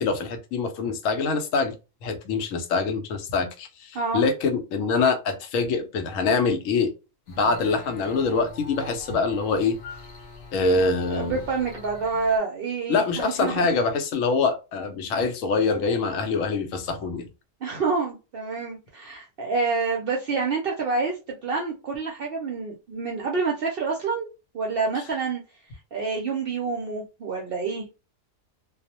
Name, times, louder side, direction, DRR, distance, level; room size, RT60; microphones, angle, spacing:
voice 1, 0.0-1.7 2.0-6.9 7.3-9.8 10.5-11.4 12.9-17.3, left 4 dB, 90° left, 7 dB, 1.0 m, -24 dB
sound 1, 7.3-12.4, left 2 dB, 60° left, 0.6 m, -43 dB
voice 2, 11.1-13.7 17.6-24.3 24.5-25.4 25.9-27.8, right 4 dB, 60° right, 0 dB, 0.6 m, -27 dB
2.4 x 2.0 x 2.7 m, 0.29 s
omnidirectional pair, 1.3 m